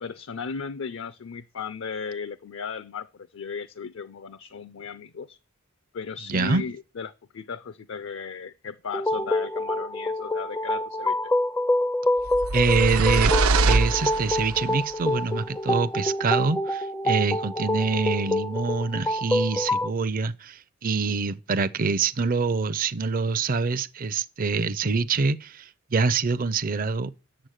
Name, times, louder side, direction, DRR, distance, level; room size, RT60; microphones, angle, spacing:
voice 1, 0.0-5.4 5.9-11.2, left 5 dB, 65° left, 0.5 m, -36 dB
voice 2, 6.3-6.6 12.5-13.3 13.7-27.1, right 4 dB, 40° right, 0.5 m, -25 dB
sound 1, 8.9-19.9, left 1 dB, 10° left, 0.4 m, -26 dB
sound 2, 12.3-14.7, right 3 dB, 85° right, 0.7 m, -23 dB
9.0 x 6.9 x 6.5 m
head